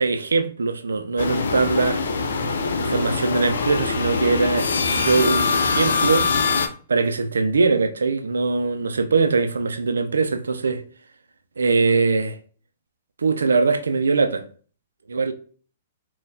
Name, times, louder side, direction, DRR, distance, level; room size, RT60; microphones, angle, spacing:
voice 1, 0.0-2.0 2.8-6.3 6.9-10.8 11.6-12.4 13.2-14.4 15.1-15.3, right 4 dB, 85° right, 0.4 m, -21 dB
sound 1, 1.2-6.7, left 4 dB, 75° left, 0.4 m, -23 dB
3.9 x 2.3 x 2.6 m
hypercardioid pair, 120°, 0 cm